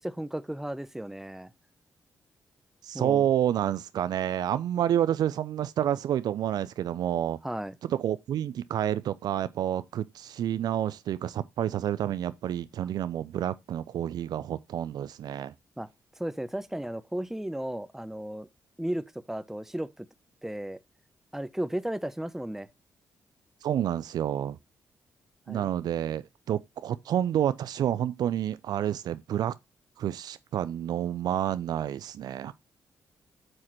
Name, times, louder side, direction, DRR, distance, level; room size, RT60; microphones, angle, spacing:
voice 1, 0.0-1.5 2.9-3.3 7.4-7.8 12.8-12.9 15.8-15.9 16.2-18.5 18.8-20.1 20.4-20.8 21.3-22.7 25.5-25.7, right 1 dB, 5° right, 0.7 m, -34 dB
voice 2, 2.8-7.4 7.8-15.5 23.6-24.6 25.5-29.6 30.0-32.5, right 10 dB, 75° right, 0.4 m, -29 dB
8.7 x 6.4 x 3.0 m
supercardioid pair, 60°, 7 cm